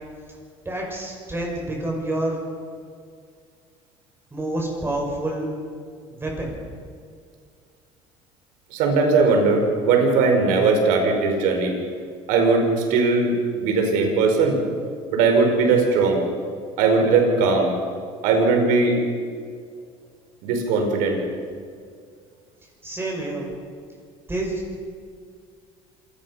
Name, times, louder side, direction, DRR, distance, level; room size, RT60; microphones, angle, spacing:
voice 1, 0.6-2.4 4.3-5.5 6.1-6.5 22.8-23.5 24.3-24.6, right 1 dB, 15° right, -1 dB, 6.3 m, -28 dB
voice 2, 8.7-11.7 12.3-13.3 13.6-14.6 15.1-16.2 16.8-17.7 18.2-19.0 20.4-21.2, right 4 dB, 80° right, 3 dB, 5.0 m, -19 dB
27.0 x 17.0 x 5.7 m, 2.1 s
supercardioid pair, 100°, 14 cm